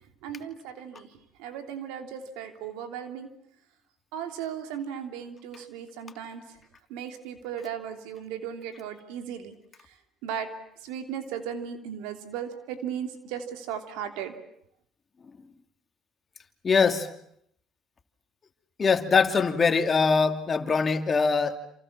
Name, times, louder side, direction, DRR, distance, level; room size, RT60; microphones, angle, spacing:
voice 1, 0.2-3.3 4.1-6.6 6.9-9.5 9.8-9.9 10.2-10.5 10.8-14.3, right 8 dB, 85° right, 7 dB, 3.1 m, -36 dB
voice 2, 16.6-17.1 18.8-21.6, left 5 dB, 35° left, 7 dB, 2.7 m, -22 dB
28.5 x 27.5 x 7.4 m, 0.73 s
supercardioid pair, 85°, 0 cm